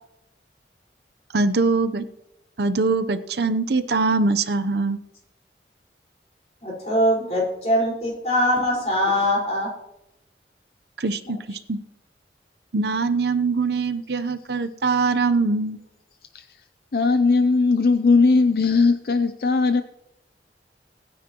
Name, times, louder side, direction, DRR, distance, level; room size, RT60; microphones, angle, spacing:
voice 1, 1.3-2.1 2.6-5.0 11.0-11.8 12.7-15.8, right 3 dB, 70° right, 11 dB, 0.7 m, -22 dB
voice 2, 6.6-9.7, left 1 dB, 40° left, -3 dB, 4.7 m, -22 dB
voice 3, 16.9-19.8, left 4 dB, 55° left, 9 dB, 0.5 m, -18 dB
22.0 x 10.0 x 3.0 m, 0.89 s
head